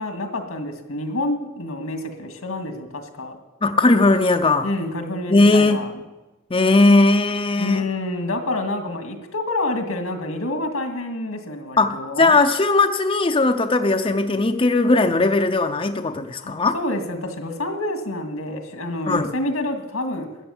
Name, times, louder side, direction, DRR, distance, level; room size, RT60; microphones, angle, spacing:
voice 1, 0.0-3.4 4.6-5.9 7.6-12.3 16.4-20.3, left 2 dB, 85° left, 4 dB, 2.1 m, -28 dB
voice 2, 3.6-4.7 5.3-5.9 6.5-7.8 11.8-16.7 19.1-19.3, left 2 dB, 25° left, 5 dB, 0.6 m, -18 dB
13.0 x 10.0 x 7.2 m, 1.1 s
head